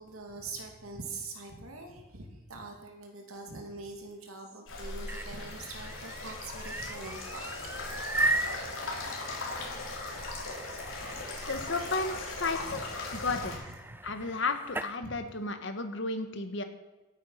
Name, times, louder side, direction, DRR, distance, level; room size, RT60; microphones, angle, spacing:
voice 1, 0.0-10.3 11.0-12.2 12.7-12.8 13.1-13.7 14.9-15.3, right 3 dB, 85° right, 3 dB, 2.7 m, -45 dB
sound 1, 4.7-13.6, left 3 dB, 75° left, 3.5 m, -39 dB
sound 2, 4.8-15.0, right 2 dB, 10° right, 0.4 m, -37 dB
voice 2, 11.5-12.8 13.1-13.4 14.0-16.6, left 3 dB, 60° left, 7 dB, 1.4 m, -33 dB
16.5 x 9.1 x 5.8 m, 1.1 s
head